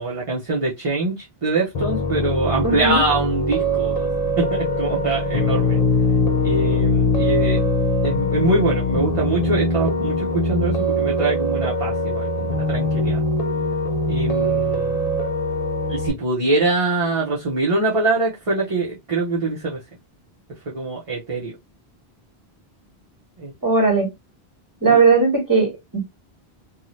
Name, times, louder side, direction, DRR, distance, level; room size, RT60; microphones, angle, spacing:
voice 1, 0.0-4.1 4.4-5.8 6.4-7.6 8.0-13.2 14.1-14.9 15.9-19.8 20.7-21.5 23.4-23.5 24.9-25.0, right 2 dB, 35° right, 0.8 m, -23 dB
Piano, 1.7-16.1, left 1 dB, 45° left, 0.6 m, -22 dB
voice 2, 2.6-3.0 23.6-24.1 24.8-26.0, right 4 dB, 20° right, 1.4 m, -17 dB
2.7 x 2.3 x 3.0 m
omnidirectional pair, 1.1 m